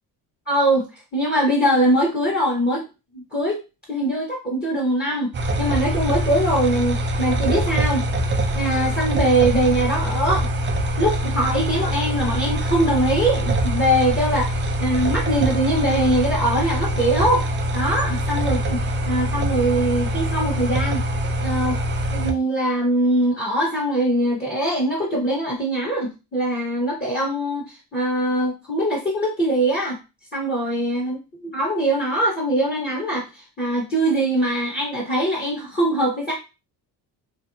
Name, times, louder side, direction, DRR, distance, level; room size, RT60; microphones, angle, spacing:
voice 1, 0.5-0.9 1.1-2.8 3.1-3.6 3.9-5.3 5.6-8.1 8.5-10.5 11.0-17.4 17.7-18.8 19.1-21.0 21.4-21.8 22.1-30.0 30.3-36.3, right 1 dB, 20° left, -3 dB, 1.1 m, -22 dB
sound 1, 5.3-22.3, right 1 dB, 25° right, 0.5 m, -24 dB
2.6 x 2.1 x 2.6 m, 0.29 s
supercardioid pair, 70°, 45 cm